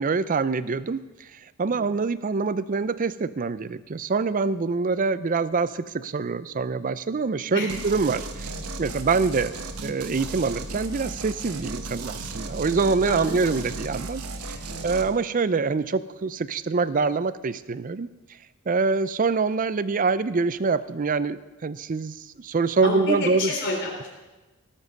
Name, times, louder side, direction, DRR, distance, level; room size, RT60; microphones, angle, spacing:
voice 1, 0.0-8.5 8.8-9.6 9.8-14.2 14.5-14.6 14.8-18.4 18.7-23.5, right 4 dB, 35° right, 15 dB, 0.4 m, -25 dB
sound 1, 7.7-15.1, right 3 dB, 80° right, 1.2 m, -35 dB
voice 2, 22.8-24.1, left 2 dB, 55° left, -1 dB, 3.4 m, -29 dB
18.0 x 7.3 x 6.6 m, 1.2 s
head